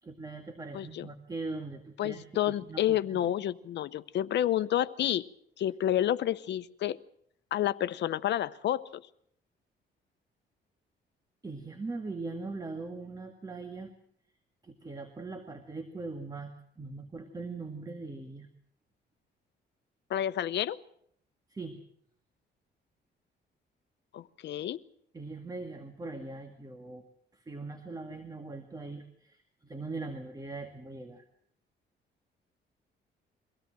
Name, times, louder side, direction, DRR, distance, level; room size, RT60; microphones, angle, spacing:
voice 1, 0.0-3.3 11.4-13.9 14.6-18.5 21.5-21.8 25.1-27.0 27.3-31.2, right 3 dB, 20° right, 5 dB, 2.0 m, -41 dB
voice 2, 0.7-1.1 2.0-5.2 5.6-7.0 7.5-9.0 20.1-20.8 24.1-24.8, left 11 dB, 70° left, 15 dB, 0.9 m, -29 dB
24.0 x 17.0 x 7.6 m, 0.67 s
cardioid pair, 115°, 19 cm